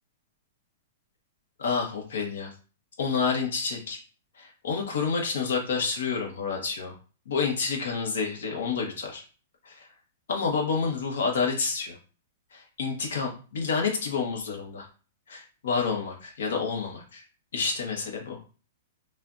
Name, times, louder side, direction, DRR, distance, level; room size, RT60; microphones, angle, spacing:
voice 1, 1.6-2.5 3.0-4.0 4.4-6.9 7.2-9.2 9.6-9.9 10.3-11.9 12.5-14.9 15.3-17.2 17.5-18.4, left 5 dB, 80° left, 0 dB, 1.4 m, -29 dB
5.5 x 2.5 x 2.7 m, 0.36 s
hypercardioid pair, 145°, 0 cm